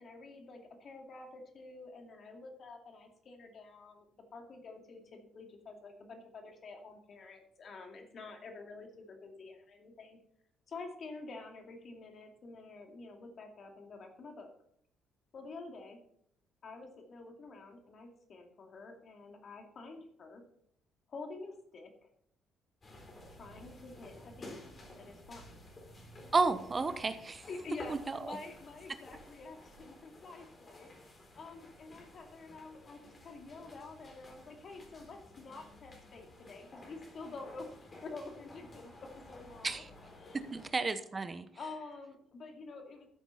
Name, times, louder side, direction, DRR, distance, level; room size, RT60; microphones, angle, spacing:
voice 1, 0.0-4.1 4.3-10.2 10.7-14.5 15.3-16.0 16.6-20.4 21.1-22.1 23.4-24.6 25.0-25.6 27.5-37.7 38.0-39.8 40.1-40.5 41.5-43.1, left 3 dB, 50° left, 3 dB, 2.4 m, -48 dB
sound 1, 22.8-40.7, left 1 dB, 35° left, 4.0 m, -54 dB
voice 2, 26.3-27.5 27.9-28.4 39.6-39.9 40.5-41.5, right 4 dB, 30° right, 10 dB, 1.0 m, -32 dB
13.5 x 8.0 x 4.1 m, 0.69 s
hypercardioid pair, 60°, 0 cm